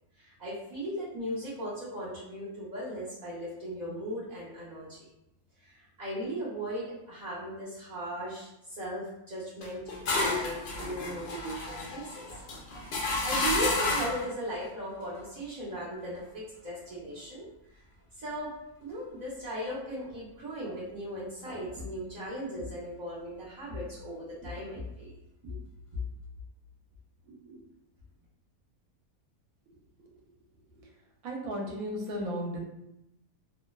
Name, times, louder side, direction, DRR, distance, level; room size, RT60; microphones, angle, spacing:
voice 1, 0.2-5.0 5.6-12.3 13.2-17.8 18.2-18.5 18.8-25.1 25.4-25.6 25.9-26.0 27.3-27.6, equal, 90° right, -9 dB, 0.3 m, -37 dB
sound 1, 9.6-14.3, left 2 dB, 80° left, 0.5 m, -31 dB
voice 2, 31.2-32.6, equal, 70° right, 0 dB, 1.0 m, -35 dB
2.7 x 2.1 x 2.2 m, 0.87 s
omnidirectional pair, 1.6 m